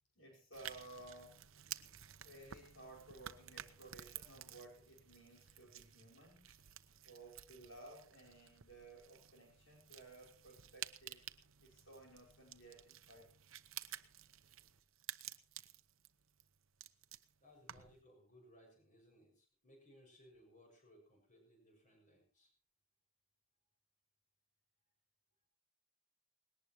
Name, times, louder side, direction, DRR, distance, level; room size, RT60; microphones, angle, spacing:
voice 1, 0.1-1.5 2.2-6.6 7.0-11.2 11.6-13.4, right 2 dB, 65° left, -2 dB, 5.0 m, -57 dB
sound 1, 0.5-18.0, right 11 dB, 70° right, 0.9 m, -53 dB
voice 2, 17.4-22.5, equal, 35° left, 1 dB, 6.7 m, -64 dB
19.5 x 18.0 x 3.1 m, 0.37 s
head